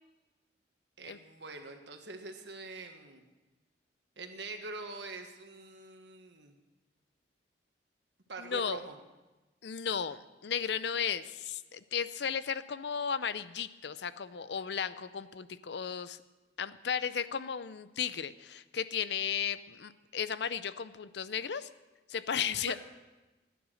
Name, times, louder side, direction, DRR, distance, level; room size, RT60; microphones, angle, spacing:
voice 1, 1.0-3.2 4.2-6.5 8.3-9.0 22.7-22.8, right 3 dB, 75° right, 5 dB, 1.6 m, -44 dB
voice 2, 8.4-8.8 9.6-16.2 16.6-21.7 22.1-22.8, left 7 dB, 70° left, 15 dB, 0.5 m, -35 dB
15.5 x 10.0 x 6.4 m, 1.1 s
head